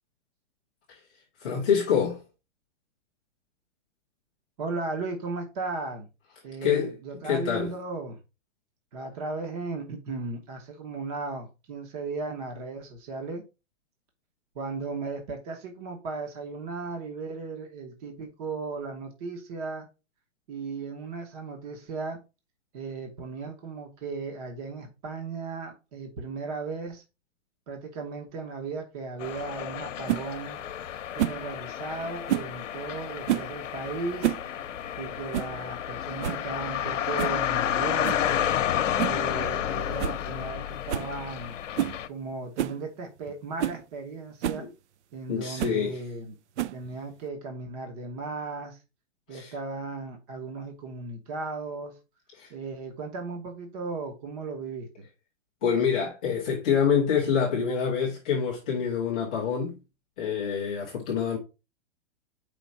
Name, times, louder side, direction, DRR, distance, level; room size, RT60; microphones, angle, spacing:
voice 1, 1.4-2.2 6.6-6.9 7.3-7.7 44.6-44.7 45.3-46.0 49.3-49.5 52.3-52.5 55.6-59.8 60.2-61.4, left 7 dB, 5° left, 0.4 m, -26 dB
voice 2, 4.6-6.1 6.4-8.2 8.9-13.4 14.5-19.9 20.5-22.2 22.7-27.0 27.7-30.6 31.1-34.3 35.0-38.6 39.1-41.6 42.1-44.7 45.1-46.3 46.7-48.8 49.3-52.0 52.5-54.9, right 3 dB, 30° right, 1.1 m, -36 dB
sound 1, 29.2-42.1, left 10 dB, 80° left, 0.8 m, -31 dB
sound 2, 30.1-30.3 31.2-31.4 32.3-32.5 33.3-33.5 34.0-34.5 34.7-34.8 35.3-35.6 35.9-36.0 36.2-36.5 37.2-37.4 38.0-38.3 39.0-39.2 39.6-39.7 40.0-40.2 40.5-40.6 40.9-41.1 41.8-42.0 42.6-42.8 43.3-43.4 43.6-43.8 44.4-44.6 45.6-45.8 46.6-46.9, right 12 dB, 65° right, 0.5 m, -29 dB
5.0 x 3.8 x 5.7 m
hypercardioid pair, 165°, 37 cm